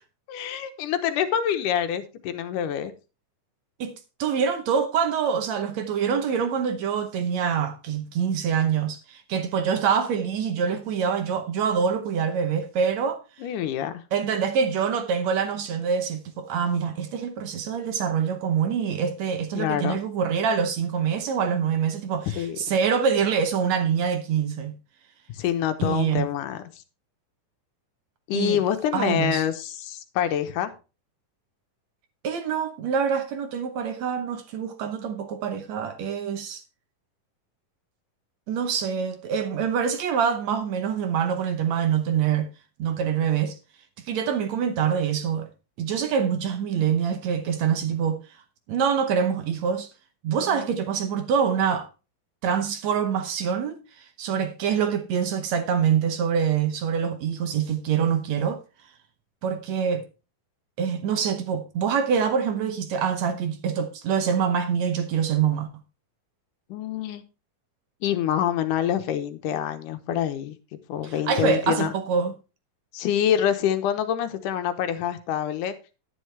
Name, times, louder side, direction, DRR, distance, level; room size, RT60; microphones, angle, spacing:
voice 1, 0.3-2.9 13.4-14.0 19.6-20.0 22.4-22.6 25.3-26.6 28.3-30.7 50.4-50.7 66.7-67.2 68.0-70.6 70.9-71.9 72.9-75.8, left 10 dB, 75° left, 2.4 m, -26 dB
voice 2, 3.8-13.2 14.1-24.8 25.8-26.3 28.3-28.6 28.9-29.4 32.2-36.6 38.5-42.5 42.8-43.6 44.1-45.5 45.8-48.2 48.7-49.9 50.2-51.9 52.4-58.6 59.4-60.1 60.8-65.7 71.0-72.3, right 7 dB, 65° right, 1.9 m, -25 dB
10.5 x 10.0 x 3.3 m
omnidirectional pair, 3.9 m